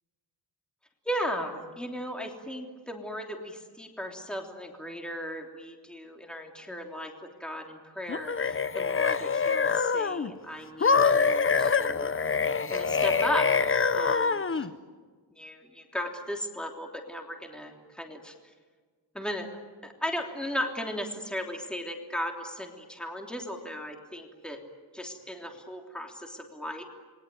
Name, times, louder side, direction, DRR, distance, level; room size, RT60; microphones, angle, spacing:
voice 1, 1.0-7.1 7.4-12.1 12.7-13.5 13.9-14.7 15.4-18.3 19.1-19.5 19.8-24.6 24.9-26.9, equal, ahead, 2 dB, 3.2 m, -36 dB
sound 1, 8.1-10.3 10.8-14.7, left 5 dB, 30° left, 1.0 m, -25 dB
29.0 x 21.5 x 9.5 m, 1.5 s
wide cardioid pair, 145°, 45 cm